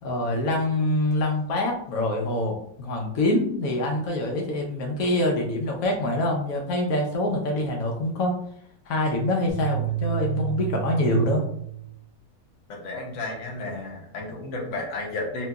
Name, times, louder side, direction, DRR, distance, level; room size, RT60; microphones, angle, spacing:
voice 1, 0.0-8.3 8.9-11.4, left 1 dB, 80° left, 0 dB, 1.1 m, -25 dB
sound 1, 9.5-12.0, right 11 dB, 30° left, 0.7 m, -30 dB
voice 2, 12.7-15.5, left 2 dB, 60° left, -1 dB, 1.0 m, -32 dB
2.9 x 2.8 x 2.2 m, 0.66 s
omnidirectional pair, 1.5 m